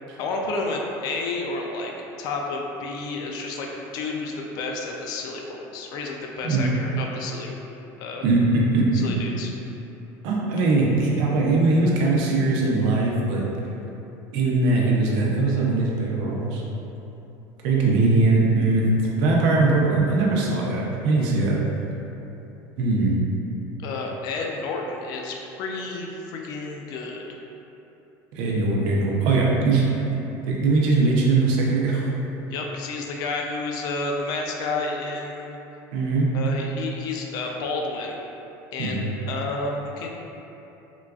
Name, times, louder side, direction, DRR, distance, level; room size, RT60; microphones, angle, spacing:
voice 1, 0.2-1.9 2.2-3.7 3.9-7.6 8.0-8.2 8.9-9.5 23.8-27.4 32.5-35.6 36.3-38.2 38.7-40.1, left 3 dB, 50° left, 0 dB, 0.3 m, -30 dB
voice 2, 8.2-9.0 10.2-13.5 14.3-16.6 17.6-18.9 19.2-21.6 22.8-23.2 28.3-29.8 30.5-32.1 35.9-36.3 38.8-39.1, right 3 dB, 70° right, -3 dB, 0.6 m, -21 dB
3.7 x 2.3 x 2.3 m, 3.0 s
cardioid pair, 145°, 8 cm